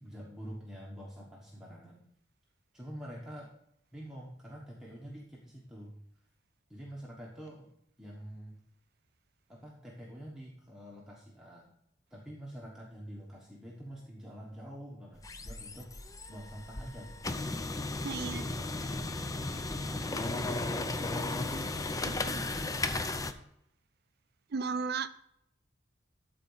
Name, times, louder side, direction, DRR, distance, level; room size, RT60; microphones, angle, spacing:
voice 1, 0.0-2.0 2.7-3.5 3.9-6.0 6.7-7.7 8.0-8.6 9.5-11.7 12.1-15.9 16.3-17.4 18.1-19.3 19.9-20.7, equal, 5° right, -4 dB, 1.2 m, -46 dB
sound 1, 15.2-23.3, left 2 dB, 20° left, 0.5 m, -35 dB
voice 2, 18.0-18.4 22.0-22.4 24.5-25.1, right 5 dB, 55° right, 13 dB, 0.5 m, -35 dB
12.5 x 4.3 x 5.5 m, 0.77 s
head